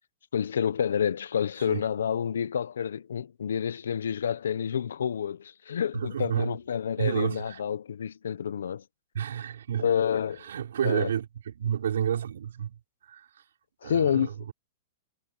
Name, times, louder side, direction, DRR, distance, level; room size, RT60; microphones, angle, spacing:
voice 1, 0.3-8.8 9.8-10.4 10.8-11.1 13.8-14.3, left 8 dB, 85° left, 1.0 m, -28 dB
voice 2, 5.9-6.6 7.0-7.6 9.1-9.9 10.4-13.3 13.8-14.5, right 9 dB, 80° right, 5.9 m, -30 dB
hypercardioid pair, 125°, 0 cm